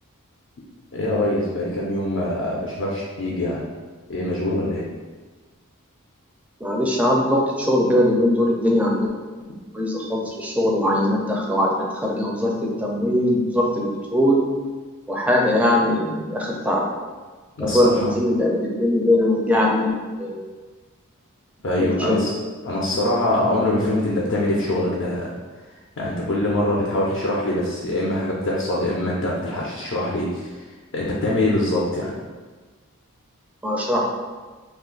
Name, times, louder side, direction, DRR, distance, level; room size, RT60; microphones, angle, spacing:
voice 1, 0.9-3.6 4.1-4.9 17.6-18.1 21.6-22.3 22.6-25.3 26.0-30.6 30.9-32.1, left 1 dB, 55° left, -4 dB, 0.5 m, -23 dB
voice 2, 6.6-9.1 9.7-14.4 15.1-16.8 17.6-19.9 20.2-20.5 21.7-22.2 33.6-34.1, left 1 dB, 5° right, -2 dB, 0.4 m, -21 dB
2.5 x 2.4 x 3.7 m, 1.3 s
head